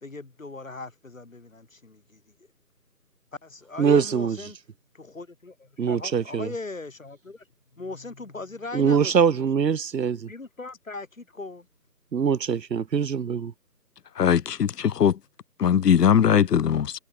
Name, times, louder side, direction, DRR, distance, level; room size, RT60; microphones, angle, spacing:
voice 1, 0.0-2.2 3.4-4.6 4.9-7.4 7.7-9.5 10.3-11.7, left 3 dB, 50° left, 3.2 m, -39 dB
voice 2, 3.8-4.4 5.8-6.5 8.7-10.3 12.1-13.5, right 7 dB, 85° right, 0.7 m, -23 dB
voice 3, 14.2-15.1 15.6-16.9, left 8 dB, 75° left, 0.5 m, -20 dB
figure-of-eight pair, 165°, 49 cm